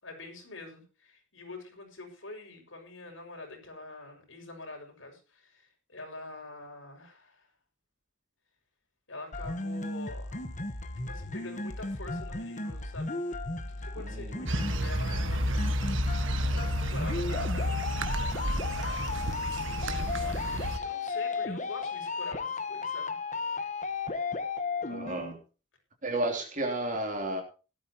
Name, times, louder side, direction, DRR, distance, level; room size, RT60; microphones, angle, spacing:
voice 1, 0.0-7.5 9.1-10.4 11.1-13.2 13.7-15.5 16.5-17.8 19.6-23.2, left 2 dB, 80° left, 2 dB, 6.3 m, -45 dB
sound 1, 9.3-25.3, left 3 dB, 40° left, 1.2 m, -35 dB
voice 2, 14.0-14.5 15.1-15.2 24.9-25.4 26.0-27.4, right 2 dB, 40° right, 3 dB, 3.2 m, -32 dB
sound 2, 14.5-20.8, equal, 80° right, 1.6 m, -31 dB
17.5 x 13.0 x 3.0 m, 0.33 s
head